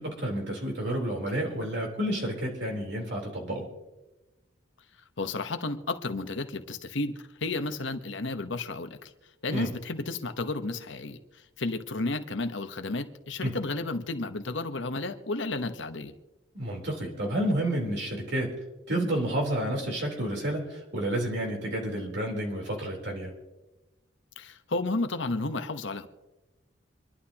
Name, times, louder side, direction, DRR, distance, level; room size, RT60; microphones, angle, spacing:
voice 1, 0.0-3.7 9.5-9.7 13.4-13.5 16.5-18.5 18.9-23.3, right 1 dB, 65° right, 0 dB, 3.7 m, -30 dB
voice 2, 5.2-9.1 9.4-11.2 11.6-16.1 24.4-26.1, left 2 dB, 80° left, 9 dB, 1.1 m, -32 dB
26.5 x 11.5 x 2.9 m, 1.1 s
head